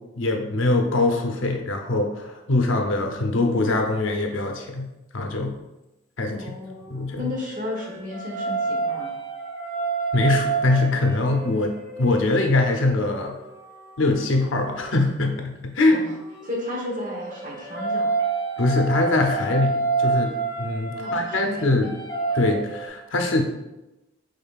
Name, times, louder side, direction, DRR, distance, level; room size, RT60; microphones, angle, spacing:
voice 1, 0.2-4.9 5.1-5.5 6.2-6.5 6.9-7.3 10.1-11.7 12.0-13.3 14.0-16.0 18.6-21.9 22.3-23.4, left 2 dB, 75° left, 3 dB, 0.7 m, -23 dB
voice 2, 6.3-6.8 7.2-9.1 15.9-16.1 16.4-18.1 19.4-19.5 20.9-21.9, left 2 dB, 40° right, -3 dB, 1.1 m, -33 dB
sound 1, 6.7-14.9 16.1-22.9, right 4 dB, 15° left, 1.0 m, -29 dB
5.4 x 3.8 x 2.4 m, 0.97 s
head